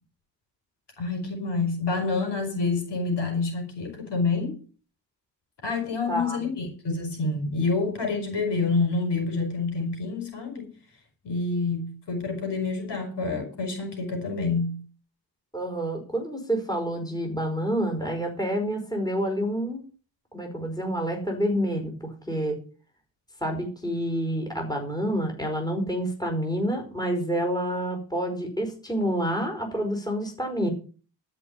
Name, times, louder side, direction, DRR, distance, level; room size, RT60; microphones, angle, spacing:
voice 1, 1.0-4.5 5.6-10.7 11.2-14.8, left 3 dB, 60° left, 4.8 m, -27 dB
voice 2, 6.1-6.4 15.5-19.8 20.3-22.6 23.4-30.7, equal, 10° left, 5.0 m, -28 dB
13.0 x 5.7 x 8.3 m
cardioid pair, 75°, 46 cm